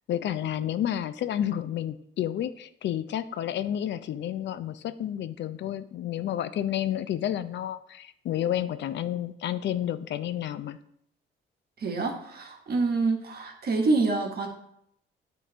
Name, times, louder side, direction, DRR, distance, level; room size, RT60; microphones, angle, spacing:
voice 1, 0.1-10.8, left 11 dB, 65° left, 13 dB, 0.5 m, -30 dB
voice 2, 11.8-14.5, right 3 dB, 50° right, 2 dB, 1.4 m, -26 dB
8.6 x 3.9 x 3.9 m, 0.73 s
cardioid pair, 90°, 20 cm